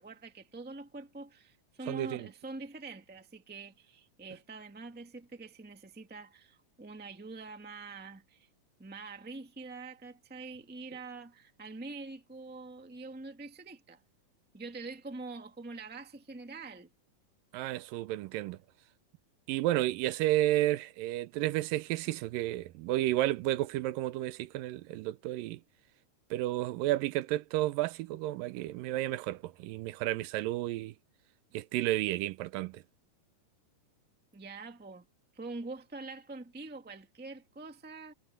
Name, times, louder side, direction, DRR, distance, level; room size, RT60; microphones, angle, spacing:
voice 1, 0.0-8.5 8.8-14.0 14.5-16.9 34.3-35.0 35.3-38.1, right 3 dB, 5° right, 0.8 m, -45 dB
voice 2, 1.9-2.3 17.5-18.6 19.5-25.6 26.3-30.9 31.5-32.8, right 15 dB, 85° right, 2.4 m, -32 dB
omnidirectional pair, 3.8 m